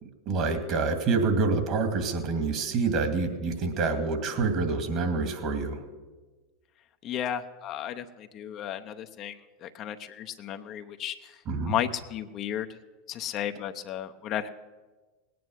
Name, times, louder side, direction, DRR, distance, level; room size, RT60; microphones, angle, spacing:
voice 1, 0.0-5.8 11.5-11.7, right 4 dB, 50° right, 7 dB, 2.3 m, -27 dB
voice 2, 7.0-11.4 11.7-12.7 13.1-14.5, left 10 dB, 45° left, 8 dB, 0.8 m, -34 dB
18.5 x 9.4 x 6.4 m, 1.3 s
hypercardioid pair, 95°, 0 cm